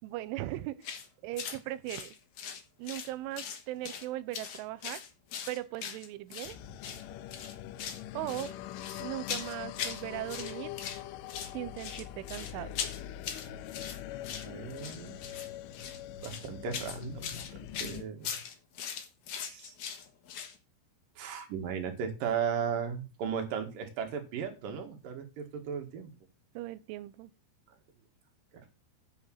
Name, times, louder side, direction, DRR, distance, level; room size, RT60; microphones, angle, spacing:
voice 1, 0.0-0.9 1.2-2.1 2.8-5.0 5.5-6.6 8.1-8.5 9.0-10.7 11.5-12.8 26.5-27.3, right 15 dB, 90° right, 3.2 m, -38 dB
sound 1, 0.8-1.1 1.4-1.6 1.9-3.1 3.3-4.1 4.3-6.5 6.8-7.0 7.3-8.0 8.3-10.0 10.3-11.0 11.3-20.5, left 7 dB, 65° left, 1.9 m, -40 dB
sound 2, 6.4-18.0, left 12 dB, 85° left, 3.2 m, -43 dB
voice 2, 14.4-15.1 16.2-18.3 19.5-19.7 21.2-26.1 28.5-28.7, right 7 dB, 55° right, 3.2 m, -36 dB
9.7 x 5.4 x 7.7 m
omnidirectional pair, 5.5 m